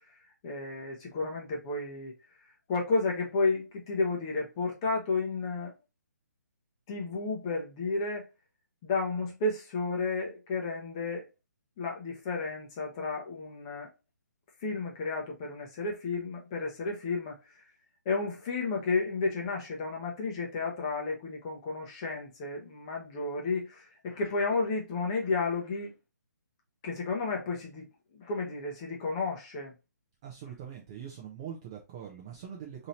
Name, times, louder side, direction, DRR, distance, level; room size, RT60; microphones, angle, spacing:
voice 1, 0.4-2.1 2.7-5.7 6.9-8.3 8.8-11.2 11.8-13.9 14.6-17.4 18.1-25.9 26.8-27.8 28.1-29.7, left 3 dB, 20° left, 0.7 m, -32 dB
voice 2, 30.2-32.9, right 8 dB, 15° right, 0.4 m, -42 dB
3.0 x 2.8 x 4.0 m
hypercardioid pair, 170°, 10 cm